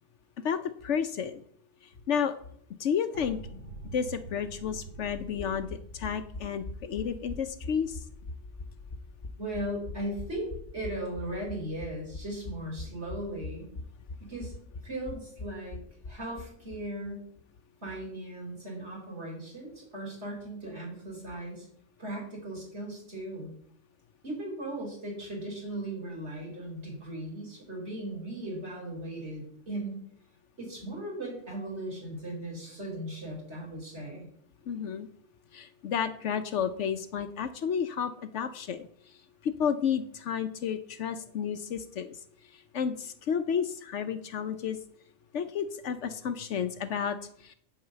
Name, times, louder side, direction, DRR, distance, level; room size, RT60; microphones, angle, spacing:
voice 1, 0.4-1.4 2.1-2.4 2.8-3.4 3.9-8.0 34.7-35.1 35.5-38.9 39.4-42.2 42.7-44.8 45.3-47.5, left 7 dB, 65° left, 10 dB, 0.9 m, -31 dB
sound 1, 3.1-8.8, right 2 dB, 35° right, 2.3 m, -46 dB
sound 2, 5.1-16.8 17.0-17.1 17.4-17.5, left 3 dB, 40° left, 1.0 m, -42 dB
voice 2, 9.4-13.7 14.2-14.5 14.8-15.8 16.1-17.3 17.8-21.7 22.0-23.5 24.2-29.9 30.6-34.3, right 1 dB, 55° right, -3 dB, 4.6 m, -37 dB
9.7 x 4.8 x 7.9 m, 0.64 s
omnidirectional pair, 1.4 m